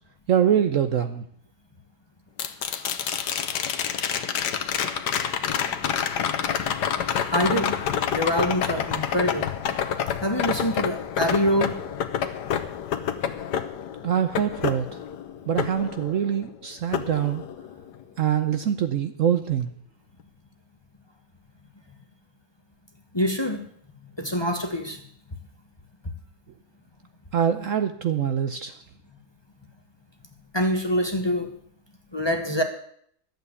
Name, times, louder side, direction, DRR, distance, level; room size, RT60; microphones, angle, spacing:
voice 1, 0.3-1.2 14.0-14.9 15.5-17.4 18.2-19.7 27.3-28.8, right 9 dB, 60° right, 9 dB, 1.0 m, -24 dB
sound 1, 2.4-16.5 16.9-18.0 20.2-20.3, left 8 dB, 85° left, 1.5 m, -28 dB
voice 2, 7.3-7.8 8.1-9.5 10.2-11.7 23.1-23.6 24.2-25.0 30.5-31.5 32.1-32.6, equal, 20° left, 5 dB, 1.1 m, -25 dB
12.0 x 8.1 x 8.2 m, 0.65 s
omnidirectional pair, 1.8 m